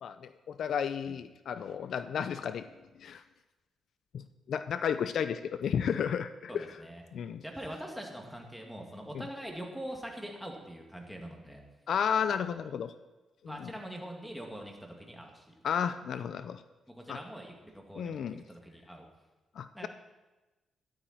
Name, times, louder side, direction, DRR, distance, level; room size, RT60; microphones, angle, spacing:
voice 1, 0.0-2.7 3.0-3.2 4.1-4.2 4.5-6.8 7.1-7.4 9.1-9.3 11.9-12.9 13.4-13.7 15.6-16.6 17.1-17.2 17.9-18.4 19.6-19.9, left 7 dB, 70° left, 11 dB, 0.5 m, -33 dB
voice 2, 6.5-7.0 7.4-11.6 13.4-15.4 16.9-18.2 18.5-19.0 19.7-19.9, right 1 dB, ahead, 1 dB, 2.4 m, -43 dB
13.0 x 11.0 x 4.4 m, 1.1 s
cardioid pair, 100°, 0 cm